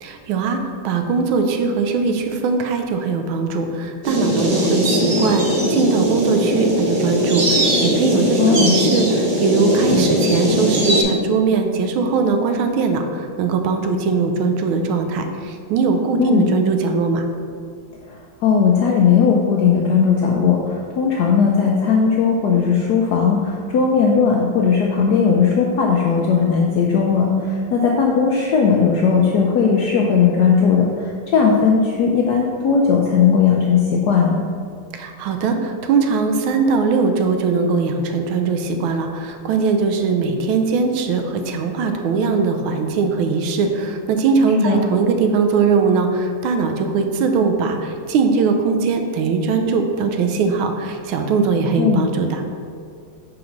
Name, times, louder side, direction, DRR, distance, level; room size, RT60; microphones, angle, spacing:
voice 1, 0.0-5.4 5.7-17.3 34.9-52.4, right 4 dB, 80° right, 5 dB, 1.4 m, -20 dB
sound 1, 4.0-11.0, equal, 55° right, 0.5 m, -19 dB
voice 2, 8.4-8.7 16.2-16.4 18.4-34.4 44.6-44.8 51.8-52.0, left 6 dB, 80° left, -1 dB, 0.9 m, -17 dB
5.2 x 3.9 x 5.8 m, 2.3 s
omnidirectional pair, 2.3 m